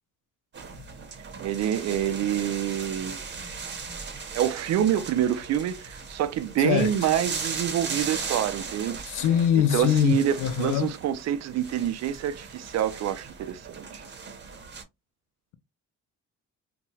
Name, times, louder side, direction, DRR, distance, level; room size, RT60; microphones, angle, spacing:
sound 1, 0.5-14.8, right 5 dB, 35° right, 0.8 m, -38 dB
voice 1, 1.4-3.2 4.3-9.0 9.7-14.0, right 10 dB, 60° right, 0.4 m, -27 dB
voice 2, 6.6-6.9 9.1-10.9, left 9 dB, 85° left, 0.5 m, -23 dB
2.8 x 2.2 x 2.7 m
cardioid pair, 90°, 30 cm